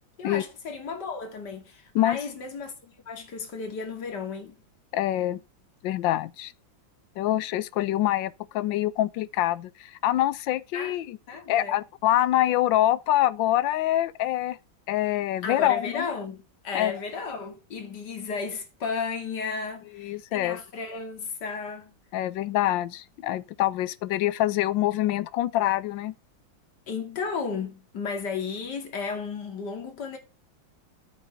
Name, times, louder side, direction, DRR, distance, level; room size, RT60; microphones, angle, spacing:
voice 1, 0.2-4.6 10.7-11.0 11.3-11.8 15.4-21.9 26.9-30.2, left 5 dB, 60° left, 2.9 m, -34 dB
voice 2, 4.9-5.4 5.8-6.5 7.2-11.2 11.5-14.6 14.9-16.1 16.7-16.9 19.9-20.6 22.1-26.1, left 14 dB, 80° left, 1.3 m, -25 dB
9.0 x 5.4 x 5.7 m
omnidirectional pair, 2.1 m